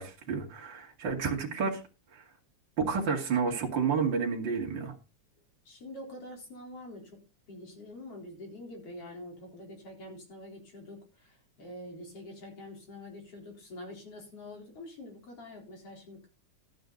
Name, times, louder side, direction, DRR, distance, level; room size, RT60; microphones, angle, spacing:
voice 1, 0.0-1.8 2.1-2.2 2.8-4.9, right 5 dB, 40° right, 3.0 m, -30 dB
voice 2, 5.7-7.2 7.5-16.3, left 1 dB, 50° left, 4.9 m, -46 dB
13.0 x 9.6 x 4.0 m
omnidirectional pair, 3.3 m